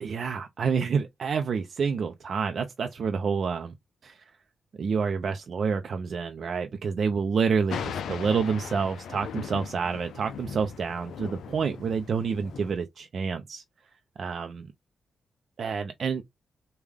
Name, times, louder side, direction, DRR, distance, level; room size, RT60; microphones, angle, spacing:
voice 1, 0.0-3.7 4.0-4.2 4.8-13.6 14.2-14.6 15.6-16.2, right 5 dB, 60° right, 0.4 m, -28 dB
Thunder, 7.7-12.7, left 7 dB, 90° left, 0.4 m, -38 dB
3.3 x 2.2 x 3.5 m
cardioid pair, 85°, 0 cm